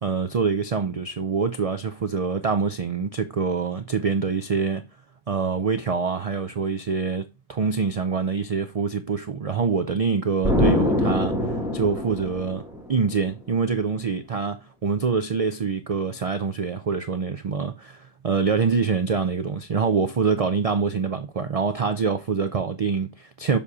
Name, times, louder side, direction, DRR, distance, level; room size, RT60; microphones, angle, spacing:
voice 1, 0.0-4.8 5.3-11.3 11.7-12.6 12.9-23.6, right 5 dB, 70° right, 0.3 m, -25 dB
Explosion, 10.4-13.1, left 1 dB, ahead, 1.1 m, -24 dB
7.1 x 2.8 x 4.8 m
omnidirectional pair, 1.3 m